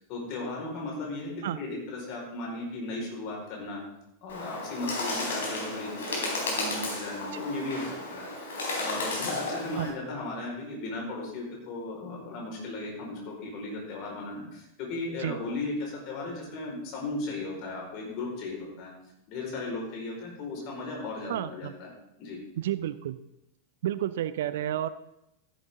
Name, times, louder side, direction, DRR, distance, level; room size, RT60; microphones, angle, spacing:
voice 1, 0.0-3.8 4.2-18.9 19.3-21.9 22.2-22.4, left 2 dB, 40° left, -1 dB, 4.8 m, -36 dB
Bird, 4.3-9.9, left 2 dB, 65° left, 3.7 m, -33 dB
voice 2, 21.3-21.7 22.6-23.2 23.8-24.9, right 12 dB, 55° right, 15 dB, 0.5 m, -31 dB
14.0 x 10.5 x 3.7 m, 0.84 s
figure-of-eight pair, 90°, 0 cm